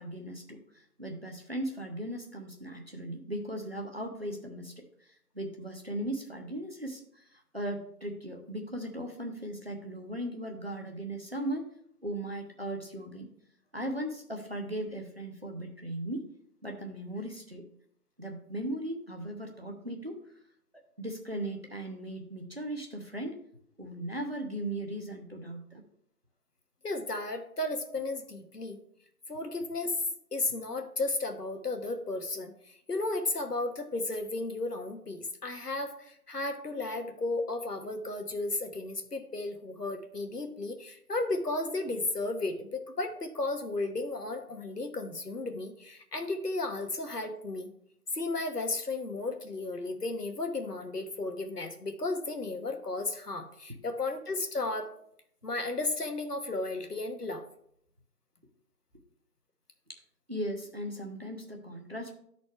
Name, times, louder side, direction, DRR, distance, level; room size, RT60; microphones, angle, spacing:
voice 1, 0.0-11.7 12.0-13.3 13.7-16.3 16.6-17.6 18.2-20.2 21.0-23.4 23.8-25.8 59.9-60.0 60.3-62.1, right 1 dB, 40° right, 3 dB, 0.8 m, -38 dB
voice 2, 26.8-28.8 29.3-30.0 30.3-47.7 48.1-54.9 55.4-57.4, left 2 dB, 85° left, 5 dB, 1.2 m, -34 dB
11.5 x 4.1 x 3.3 m, 0.69 s
figure-of-eight pair, 175°, 46 cm